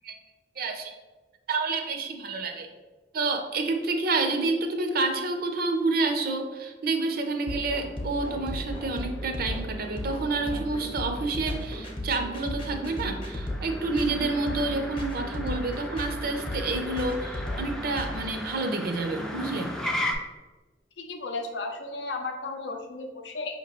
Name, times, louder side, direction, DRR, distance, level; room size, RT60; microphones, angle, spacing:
voice 1, 0.6-0.9 1.5-2.7 3.1-19.7, right 3 dB, 55° right, 5 dB, 0.5 m, -29 dB
Motor vehicle (road), 7.1-20.1, left 1 dB, 5° left, 0.4 m, -38 dB
sound 1, 7.5-18.2, equal, 30° left, 0.8 m, -34 dB
voice 2, 21.0-23.6, left 3 dB, 75° left, 4 dB, 0.6 m, -34 dB
5.6 x 2.9 x 2.9 m, 1.2 s
head